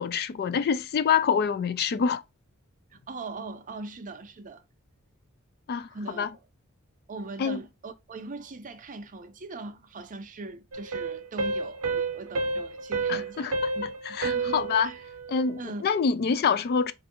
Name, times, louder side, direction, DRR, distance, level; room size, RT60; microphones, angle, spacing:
voice 1, 0.0-2.2 5.7-5.9 6.2-6.3 7.4-7.6 13.1-13.7 14.2-14.9 15.3-16.9, left 6 dB, 45° left, 0.3 m, -26 dB
voice 2, 2.9-4.6 5.9-6.3 7.1-13.9 14.2-15.0 15.6-15.9, right 3 dB, 40° right, 0.6 m, -40 dB
sound 1, 10.7-15.6, right 4 dB, 80° right, 0.8 m, -31 dB
4.1 x 2.6 x 2.7 m
head